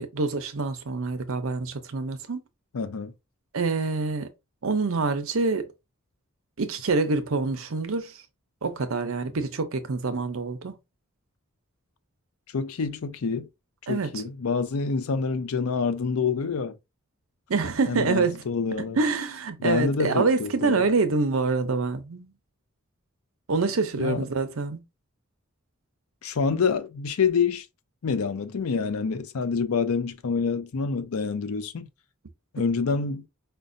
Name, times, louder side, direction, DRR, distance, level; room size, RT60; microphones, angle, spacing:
voice 1, 0.0-2.4 3.5-4.3 4.6-5.7 6.6-8.1 8.6-10.8 13.9-14.2 17.5-18.4 18.8-22.3 23.5-24.8, right 4 dB, 70° right, 0.6 m, -26 dB
voice 2, 2.7-3.1 12.5-13.5 13.9-16.8 17.9-19.0 19.6-20.9 24.0-24.3 26.2-27.7 28.0-31.9 32.5-33.3, left 5 dB, 80° left, 0.5 m, -27 dB
5.1 x 2.2 x 2.6 m
head